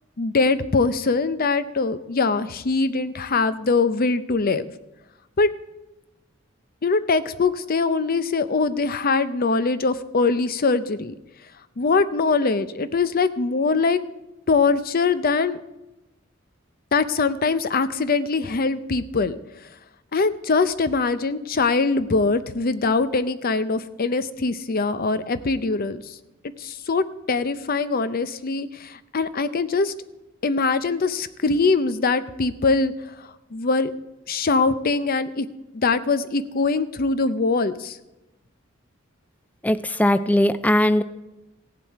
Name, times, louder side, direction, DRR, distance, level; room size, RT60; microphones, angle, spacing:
voice 1, 0.2-4.7 5.4-5.5 6.8-11.1 11.8-14.0 14.5-15.6 16.9-19.4 20.1-26.0 26.6-29.9 30.4-32.9 33.5-33.9 34.3-35.5 35.7-38.0, left 4 dB, 50° left, 13 dB, 0.6 m, -22 dB
voice 2, 39.6-41.0, left 1 dB, 10° left, 13 dB, 0.4 m, -19 dB
16.5 x 7.6 x 4.7 m, 0.98 s
head